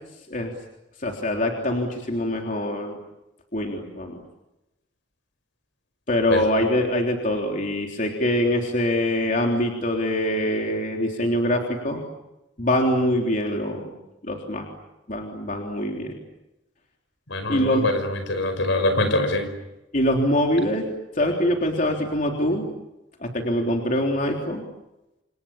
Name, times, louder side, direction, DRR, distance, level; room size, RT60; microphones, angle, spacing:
voice 1, 1.0-3.0 3.5-4.2 6.1-12.0 12.6-13.9 14.2-14.7 15.1-16.2 17.5-17.8 19.9-20.8 21.1-22.7 23.2-24.6, left 1 dB, 40° left, 1 dB, 3.6 m, -24 dB
voice 2, 17.3-19.5, left 1 dB, 70° left, 9 dB, 5.7 m, -24 dB
29.0 x 28.5 x 7.1 m, 0.95 s
head